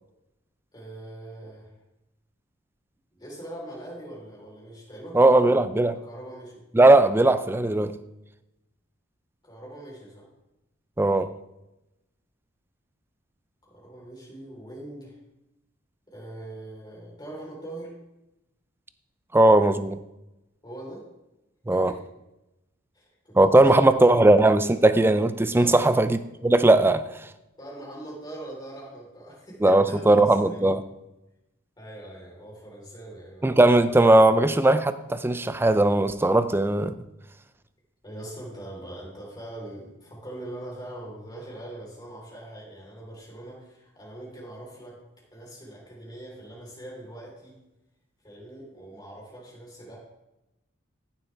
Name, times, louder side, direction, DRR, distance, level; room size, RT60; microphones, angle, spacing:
voice 1, 0.7-1.7 3.2-5.6 5.8-6.6 9.4-10.3 13.6-15.2 16.1-17.9 20.6-21.0 21.7-22.0 22.9-24.2 25.5-26.0 27.6-30.6 31.8-33.7 34.2-34.3 38.0-45.0 45.3-47.5 48.2-50.0, right 1 dB, 20° left, 3.9 m, -42 dB
voice 2, 5.1-6.0 6.7-7.9 11.0-11.3 19.3-20.0 21.7-21.9 23.4-27.1 29.6-30.8 33.4-36.9, right 2 dB, 10° right, 0.4 m, -18 dB
14.5 x 7.1 x 3.5 m
head